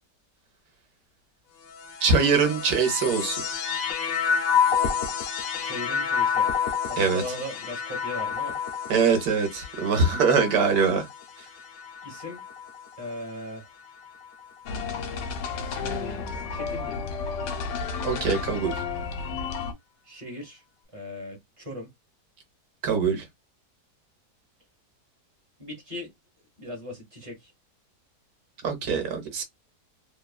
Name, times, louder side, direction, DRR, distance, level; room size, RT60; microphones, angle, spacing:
sound 1, 1.6-13.1 13.9-14.6, left 7 dB, 65° left, 1.0 m, -29 dB
voice 1, 2.0-3.4 7.0-7.2 8.9-11.1 18.0-18.8 22.8-23.3 28.6-29.4, right 5 dB, 65° right, 1.3 m, -23 dB
voice 2, 5.6-6.5 6.9-8.6 12.0-12.4 13.0-13.7 15.6-17.1 20.0-20.6 20.9-21.9 25.6-26.1 26.6-27.5, left 1 dB, 25° right, 0.9 m, -38 dB
sound 2, 14.7-19.7, left 5 dB, 85° left, 1.3 m, -32 dB
3.1 x 2.2 x 2.3 m
omnidirectional pair, 1.8 m